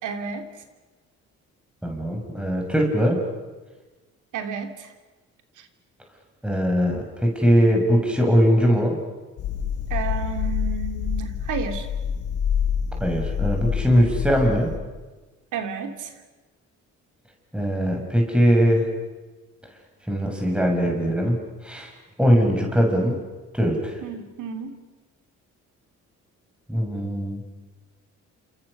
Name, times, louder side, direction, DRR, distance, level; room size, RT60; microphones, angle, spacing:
voice 1, 0.0-0.5 4.3-4.9 5.6-5.7 9.9-11.9 15.5-16.1 24.0-24.8, right 6 dB, 80° right, 6 dB, 3.2 m, -31 dB
voice 2, 1.8-3.2 6.4-8.9 13.0-14.7 17.5-18.9 20.1-21.9 22.2-23.2 23.5-24.0 26.7-27.4, equal, 5° right, 1 dB, 6.7 m, -21 dB
sound 1, 9.4-14.8, left 8 dB, 90° left, 3.7 m, -27 dB
29.5 x 27.5 x 6.8 m, 1.2 s
cardioid pair, 90°, 30 cm